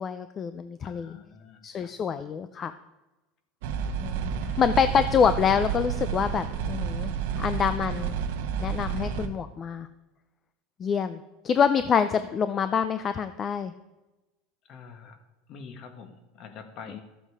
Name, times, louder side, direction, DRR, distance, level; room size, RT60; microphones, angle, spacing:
voice 1, 0.0-1.2 1.6-2.7 4.0-4.3 4.6-8.2 8.6-9.9 10.8-11.2 11.4-13.7, left 7 dB, 30° left, 11 dB, 0.5 m, -26 dB
voice 2, 0.8-1.9 4.5-4.6 14.7-15.2 15.5-17.0, left 6 dB, 45° left, 7 dB, 1.6 m, -46 dB
sound 1, 3.6-9.3, right 7 dB, 75° right, 1.2 m, -30 dB
13.0 x 7.8 x 4.9 m, 1.1 s
supercardioid pair, 135°, 0 cm